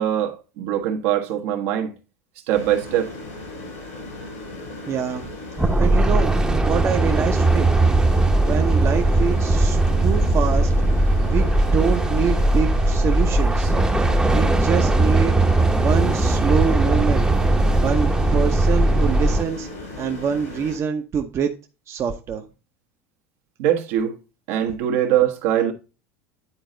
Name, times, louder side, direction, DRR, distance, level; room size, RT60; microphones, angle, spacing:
voice 1, 0.0-1.9 2.5-3.1 23.6-24.2 24.5-25.7, right 10 dB, 70° right, 1.3 m, -22 dB
sound 1, 2.5-20.8, left 2 dB, 85° left, 4.9 m, -37 dB
voice 2, 4.9-5.3 5.8-6.3 6.6-7.7 8.4-10.7 11.3-13.7 14.3-15.4 15.8-17.3 17.8-19.7 20.0-21.5 21.9-22.4, right 7 dB, 40° right, 0.9 m, -25 dB
sound 2, 5.6-19.4, right 2 dB, 10° right, 0.9 m, -19 dB
9.9 x 4.0 x 3.9 m
hypercardioid pair, 90°, 7 cm